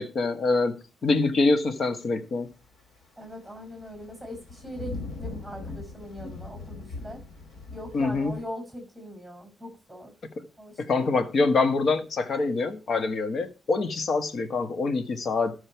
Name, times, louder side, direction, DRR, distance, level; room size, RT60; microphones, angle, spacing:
voice 1, 0.0-2.5 7.9-8.3 10.8-15.5, left 3 dB, 55° left, 1.3 m, -25 dB
voice 2, 1.0-1.4 3.2-7.2 7.7-10.1 10.6-11.2, equal, 5° left, 6.3 m, -41 dB
sound 1, 3.2-3.3 3.6-8.4, left 3 dB, 85° left, 3.6 m, -40 dB
13.0 x 6.5 x 4.5 m
cardioid pair, 115°, 0 cm